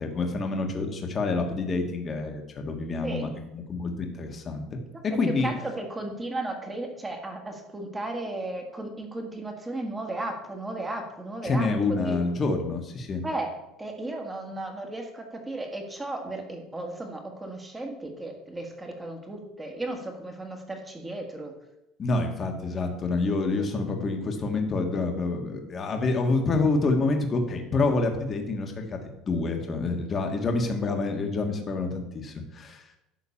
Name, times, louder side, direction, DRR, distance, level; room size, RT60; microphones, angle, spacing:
voice 1, 0.0-4.8 5.0-5.5 11.4-13.2 22.0-29.0 29.3-32.8, left 3 dB, 25° left, 4 dB, 1.4 m, -27 dB
voice 2, 5.4-12.2 13.2-13.5 13.8-21.5, right 2 dB, 10° right, 3 dB, 1.6 m, -35 dB
11.5 x 3.9 x 7.1 m, 0.89 s
cardioid pair, 140°, 0 cm